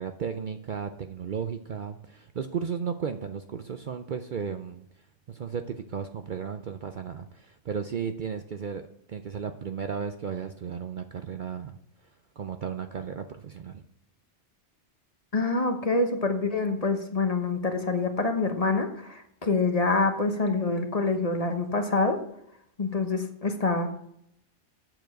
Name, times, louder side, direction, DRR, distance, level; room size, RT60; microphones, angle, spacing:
voice 1, 0.0-4.8 5.3-11.7 12.0-12.1 12.4-13.8, right 7 dB, 55° right, 7 dB, 0.6 m, -34 dB
voice 2, 15.3-22.2 22.8-23.9, left 3 dB, 35° left, 5 dB, 1.1 m, -26 dB
7.8 x 6.9 x 6.4 m, 0.72 s
omnidirectional pair, 1.2 m